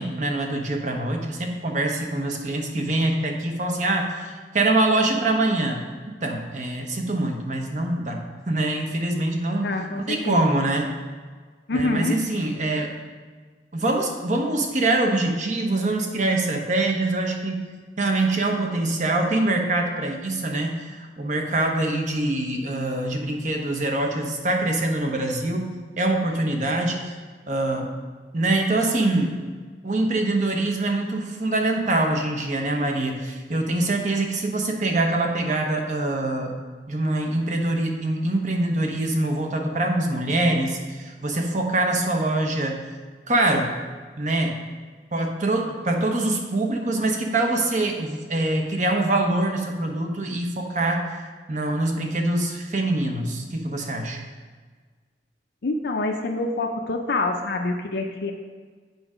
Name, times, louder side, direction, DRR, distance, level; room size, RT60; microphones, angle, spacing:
voice 1, 0.0-8.2 8.5-10.9 11.7-12.9 13.7-17.6 18.0-25.7 26.0-27.0 27.5-27.9 28.3-29.4 29.8-36.5 36.9-42.8 43.3-43.7 44.2-44.6 45.1-51.2 51.5-54.2, right 2 dB, 45° right, 2 dB, 0.9 m, -24 dB
voice 2, 9.6-10.4 11.7-12.2 55.6-58.3, left 2 dB, 60° left, 2 dB, 0.5 m, -26 dB
8.0 x 4.8 x 5.0 m, 1.5 s
head